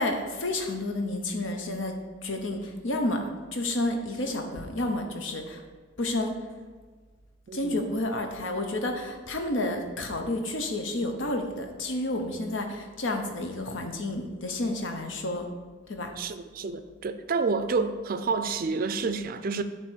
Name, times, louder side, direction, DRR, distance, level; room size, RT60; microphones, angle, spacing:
voice 1, 0.0-1.9 2.2-3.2 3.5-5.6 6.0-6.4 7.5-15.5 15.9-16.1, left 1 dB, 70° left, 4 dB, 0.9 m, -30 dB
voice 2, 7.5-7.8 16.2-19.6, right 4 dB, 45° right, 10 dB, 0.4 m, -29 dB
8.0 x 3.1 x 6.2 m, 1.4 s
head